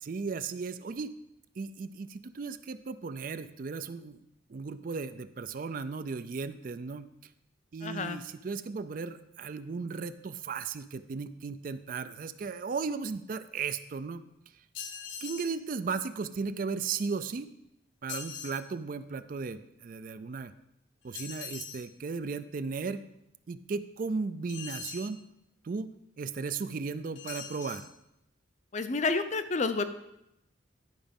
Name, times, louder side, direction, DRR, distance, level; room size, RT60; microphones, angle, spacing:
voice 1, 0.0-1.1 1.6-4.2 4.5-7.1 7.7-14.2 15.2-17.5 18.0-20.5 21.0-23.0 23.5-25.2 25.6-25.9 26.2-27.9, right 4 dB, 45° right, 12 dB, 0.4 m, -36 dB
voice 2, 7.8-8.2 28.7-29.8, left 3 dB, 35° left, 10 dB, 0.5 m, -29 dB
sound 1, 14.7-15.6 18.1-18.6 21.1-21.9 24.5-25.1 27.2-27.9, left 7 dB, 80° left, 0.9 m, -41 dB
11.0 x 5.0 x 5.3 m, 0.83 s
head